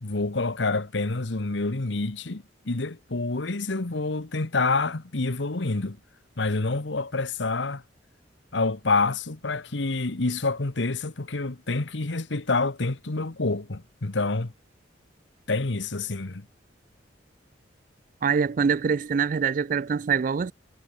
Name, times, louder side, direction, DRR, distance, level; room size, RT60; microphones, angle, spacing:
voice 1, 0.0-6.0 6.4-7.8 8.5-14.5 15.5-16.5, left 3 dB, 75° left, 1.3 m, -27 dB
voice 2, 18.2-20.5, right 6 dB, 45° right, 0.4 m, -24 dB
head